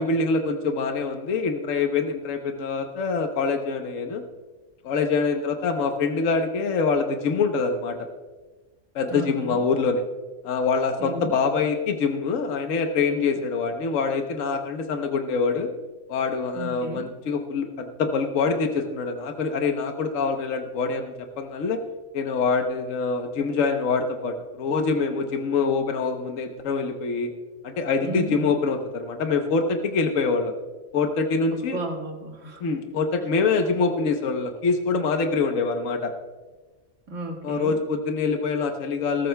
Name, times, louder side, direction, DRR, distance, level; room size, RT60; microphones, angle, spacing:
voice 1, 0.0-4.2 4.8-8.1 8.9-10.0 10.4-15.7 16.1-21.8 22.1-27.3 27.6-30.5 30.9-31.8 32.6-36.1 37.4-39.3, left 4 dB, 75° left, 5 dB, 1.3 m, -25 dB
voice 2, 9.1-9.6 11.0-11.3 16.5-17.1 28.0-28.6 31.7-32.7 37.1-37.8, right 2 dB, 65° right, 1 dB, 2.2 m, -34 dB
20.0 x 14.0 x 2.2 m, 1.3 s
omnidirectional pair, 1.4 m